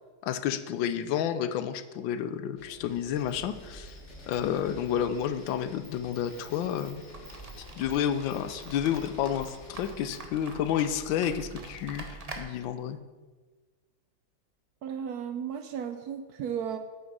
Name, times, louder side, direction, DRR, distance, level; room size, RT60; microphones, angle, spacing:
voice 1, 0.2-4.0 4.3-7.0 7.8-13.0, left 9 dB, 85° left, 12 dB, 1.4 m, -30 dB
sound 1, 2.6-9.9, left 1 dB, 45° left, 1.3 m, -50 dB
Insect, 2.9-10.3, equal, 10° left, 2.9 m, -55 dB
sound 2, 7.0-12.4, right 3 dB, 40° right, 0.5 m, -45 dB
voice 2, 14.8-16.8, right 8 dB, 70° right, 8 dB, 0.9 m, -34 dB
8.7 x 6.3 x 5.3 m, 1.3 s
omnidirectional pair, 2.0 m